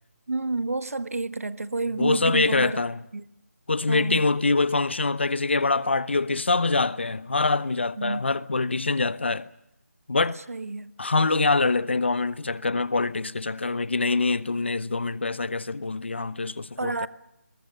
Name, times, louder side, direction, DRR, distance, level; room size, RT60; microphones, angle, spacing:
voice 1, 0.3-2.8 3.1-3.2 3.9-4.3 8.0-8.2 10.3-10.9 16.8-17.1, right 3 dB, 65° right, 1.5 m, -29 dB
voice 2, 2.0-3.0 3.7-9.5 10.1-10.4 11.0-17.1, left 3 dB, 45° left, 0.9 m, -24 dB
30.0 x 21.5 x 6.7 m
figure-of-eight pair, 180°, 8 cm